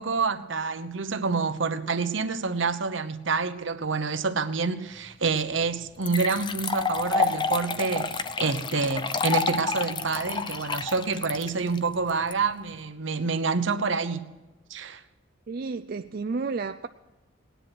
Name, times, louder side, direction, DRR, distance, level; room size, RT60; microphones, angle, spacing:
voice 1, 0.0-14.3 14.7-15.0, right 4 dB, 65° right, 0.9 m, -27 dB
sound 1, 5.4-5.5 6.0-12.3, left 4 dB, 25° left, 0.6 m, -29 dB
voice 2, 15.5-16.9, right 4 dB, 50° right, 0.4 m, -31 dB
19.0 x 10.0 x 6.1 m
head